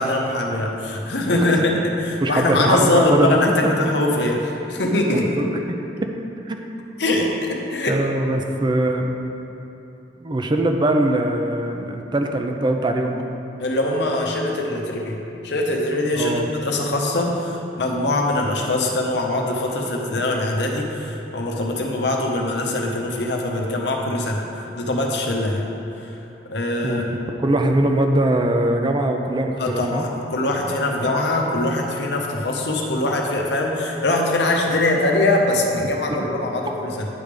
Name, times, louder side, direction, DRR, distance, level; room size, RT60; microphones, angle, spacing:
voice 1, 0.0-5.4 7.0-8.0 13.6-24.4 24.7-25.7 26.0-26.1 26.5-27.1 29.6-37.1, left 2 dB, 70° left, 0 dB, 0.8 m, -22 dB
voice 2, 2.2-3.4 5.1-5.5 6.5-6.6 7.9-9.1 10.2-13.2 16.1-16.5 26.8-27.0 27.4-30.0 36.1-36.3, right 1 dB, 25° right, 4 dB, 0.5 m, -21 dB
9.3 x 3.4 x 5.1 m, 2.9 s
head